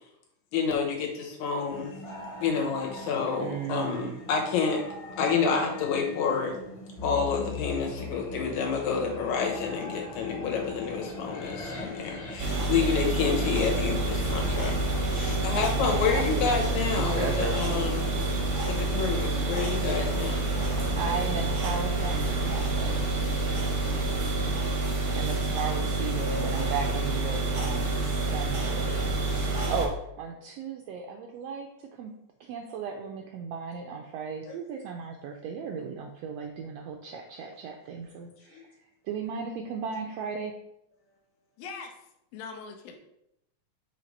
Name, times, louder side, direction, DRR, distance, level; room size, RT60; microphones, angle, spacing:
voice 1, 0.5-1.9 2.4-4.8 5.2-6.6 7.0-18.2 18.7-20.4 34.5-34.6 38.5-38.6, left 5 dB, 90° left, 1 dB, 2.5 m, -29 dB
sound 1, 1.7-21.4, equal, 35° left, 1.0 m, -44 dB
voice 2, 3.4-4.2 12.5-12.7 15.6-17.6 21.0-23.0 25.1-32.1 32.4-38.7 39.0-40.5, right 6 dB, 80° right, 2 dB, 1.5 m, -36 dB
sound 2, 7.0-24.7, left 2 dB, 55° left, 1.4 m, -40 dB
sound 3, 12.4-29.9, right 3 dB, 55° right, 0.8 m, -28 dB
voice 3, 41.6-42.0 42.3-43.0, left 5 dB, 75° left, 4 dB, 1.9 m, -41 dB
5.7 x 3.2 x 5.2 m, 0.81 s
omnidirectional pair, 3.3 m